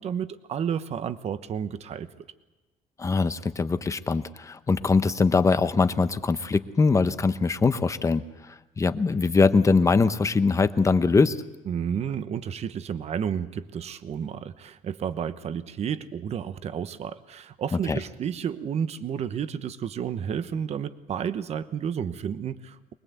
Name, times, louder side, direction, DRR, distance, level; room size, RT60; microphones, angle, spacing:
voice 1, 0.0-2.1 11.7-22.9, right 8 dB, 50° right, 12 dB, 1.0 m, -31 dB
voice 2, 3.0-8.2 8.8-11.4 17.7-18.0, left 4 dB, 20° left, 11 dB, 0.9 m, -22 dB
24.0 x 20.5 x 8.2 m, 1.1 s
cardioid pair, 140°, 14 cm